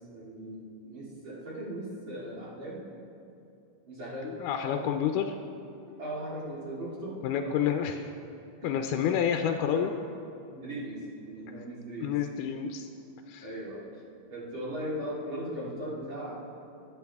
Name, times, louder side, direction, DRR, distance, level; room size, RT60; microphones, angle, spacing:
voice 1, 0.1-2.8 3.9-4.3 4.6-4.7 6.0-7.9 8.6-9.2 9.7-9.9 10.5-11.0 11.3-12.1 13.4-13.8 14.3-16.4, right 1 dB, 40° right, -7 dB, 3.1 m, -38 dB
voice 2, 4.2-5.3 7.2-8.0 8.6-9.9 12.0-12.9 13.3-13.5, left 9 dB, 80° left, 5 dB, 2.1 m, -29 dB
21.0 x 8.9 x 3.5 m, 2.6 s
omnidirectional pair, 3.6 m